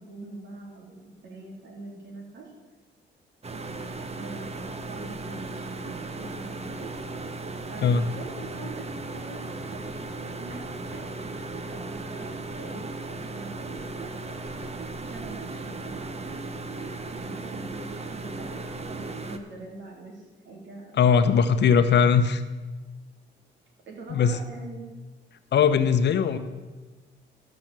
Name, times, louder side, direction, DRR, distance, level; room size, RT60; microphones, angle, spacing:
voice 1, 0.0-2.5 4.1-6.9 7.7-9.4 9.7-9.9 10.2-10.6 10.9-14.4 15.0-16.5 17.1-21.4 21.9-22.1 23.9-24.9, right 3 dB, 65° right, -1 dB, 3.4 m, -43 dB
sound 1, 3.4-19.4, right 2 dB, 30° right, 1.1 m, -36 dB
voice 2, 21.0-22.4 24.1-24.4 25.5-26.4, left 6 dB, 60° left, 10 dB, 0.9 m, -20 dB
13.5 x 6.0 x 7.5 m, 1.2 s
cardioid pair, 90°, 20 cm